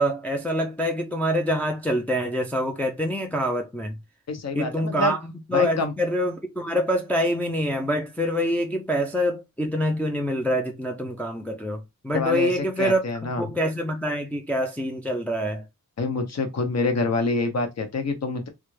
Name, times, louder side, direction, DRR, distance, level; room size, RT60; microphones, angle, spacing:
voice 1, 0.0-3.9 4.5-13.0 13.4-15.6, equal, 5° left, 0.4 m, -25 dB
voice 2, 4.3-5.1 5.5-5.9 12.1-13.4 16.0-18.5, left 3 dB, 45° left, 0.9 m, -26 dB
3.3 x 2.4 x 3.2 m
wide cardioid pair, 115°, 36 cm